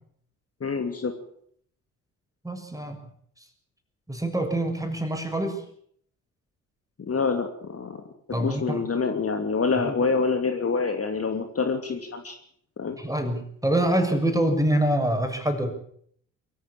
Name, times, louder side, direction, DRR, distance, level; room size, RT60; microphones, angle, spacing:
voice 1, 0.6-1.1 7.1-8.0 8.3-12.4 12.8-13.0, left 4 dB, 35° left, 6 dB, 2.9 m, -26 dB
voice 2, 2.4-3.0 4.1-5.6 8.3-8.8 9.8-10.0 13.0-15.7, right 1 dB, 10° right, 6 dB, 6.7 m, -25 dB
23.5 x 14.5 x 8.7 m, 0.64 s
hypercardioid pair, 45°, 40 cm